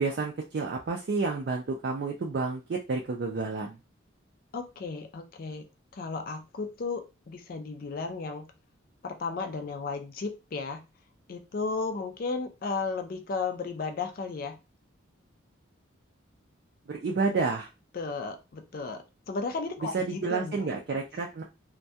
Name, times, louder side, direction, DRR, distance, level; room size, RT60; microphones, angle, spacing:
voice 1, 0.0-3.8 16.9-17.7 19.9-21.4, right 4 dB, 50° right, 0 dB, 0.3 m, -30 dB
voice 2, 4.5-5.7 5.9-8.5 9.0-10.8 11.3-14.6 17.9-20.7, left 4 dB, 45° left, 5 dB, 0.3 m, -34 dB
2.2 x 2.2 x 2.6 m, 0.27 s
head